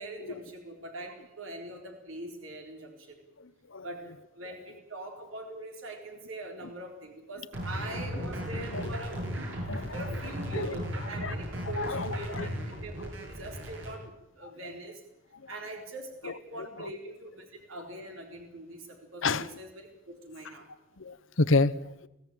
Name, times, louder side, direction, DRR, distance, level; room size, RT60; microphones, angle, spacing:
voice 1, 0.0-3.2 3.8-4.0 4.3-9.2 9.9-15.0 15.5-20.7, right 2 dB, 85° right, 4.1 m, -42 dB
voice 2, 3.4-3.8 7.9-8.0 8.6-8.9 9.6-10.2 10.5-10.7 11.2-11.3 11.8-12.5 14.6-14.7 15.4-15.6 16.2-17.0 19.2-19.5 21.0-22.1, left 3 dB, 75° left, 1.0 m, -31 dB
sound 1, 7.5-13.9, equal, 70° right, 7.7 m, -36 dB
23.5 x 16.0 x 9.2 m
head